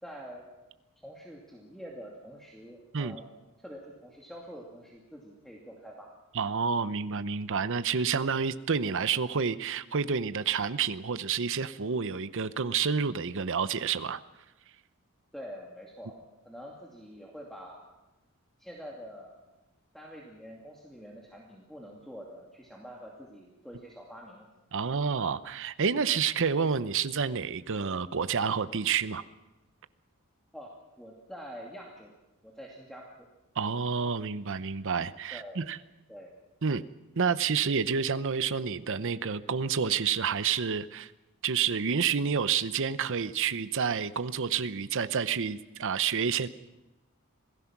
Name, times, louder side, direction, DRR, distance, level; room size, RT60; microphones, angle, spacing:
voice 1, 0.0-0.5 1.0-3.3 3.6-6.1 15.3-16.2 16.4-17.8 18.6-19.4 19.9-24.5 30.5-32.1 32.4-33.1 35.3-35.6 36.1-36.3, equal, ahead, -2 dB, 2.5 m, -46 dB
voice 2, 6.3-14.2 24.7-29.2 33.6-35.8 36.6-36.8 37.2-41.1 41.4-46.5, right 6 dB, 60° right, 14 dB, 0.7 m, -29 dB
26.5 x 18.0 x 6.0 m, 1.0 s
head